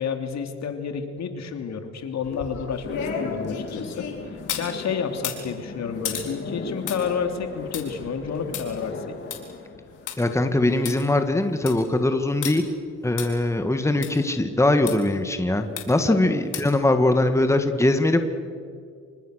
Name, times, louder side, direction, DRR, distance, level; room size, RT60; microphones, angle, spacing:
voice 1, 0.0-9.2 14.0-14.1 16.0-16.2, left 6 dB, 60° left, 6 dB, 3.0 m, -30 dB
sound 1, 2.2-4.7 5.1-10.2 10.5-10.6 10.8-10.9 11.4-11.8 12.4-12.5 13.2-13.3 14.0-14.1 14.9-15.0 15.8-16.1 16.5-16.8 17.2-17.3, left 8 dB, 85° left, 4.5 m, -34 dB
sound 2, 2.8-13.2, left 4 dB, 40° left, 3.1 m, -38 dB
voice 2, 10.2-12.6 13.0-18.3, left 2 dB, 10° left, 7 dB, 1.9 m, -21 dB
28.0 x 25.0 x 6.6 m, 2.2 s
cardioid pair, 90°, 30 cm